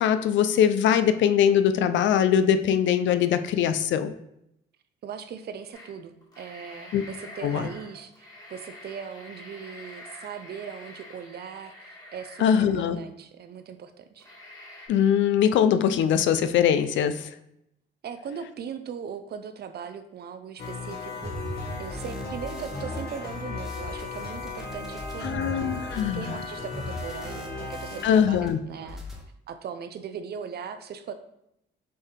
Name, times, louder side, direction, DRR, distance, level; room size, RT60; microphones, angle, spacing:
voice 1, 0.0-4.1 6.9-7.0 7.4-7.7 12.4-13.0 14.9-17.3 25.2-26.3 28.0-28.6, left 8 dB, 70° left, 10 dB, 0.4 m, -22 dB
voice 2, 5.0-14.3 18.0-25.8 26.1-29.0 29.5-31.1, right 7 dB, 55° right, 9 dB, 0.5 m, -39 dB
sound 1, 5.7-5.9 6.2-13.1 13.6-13.7 14.2-14.9, left 1 dB, 20° left, 1.5 m, -46 dB
sound 2, 20.6-28.1, left 3 dB, 50° left, 1.2 m, -37 dB
sound 3, 21.2-28.5 28.7-29.2, left 1 dB, ahead, 0.9 m, -39 dB
5.3 x 2.7 x 3.6 m, 0.78 s
cardioid pair, 90°, 20 cm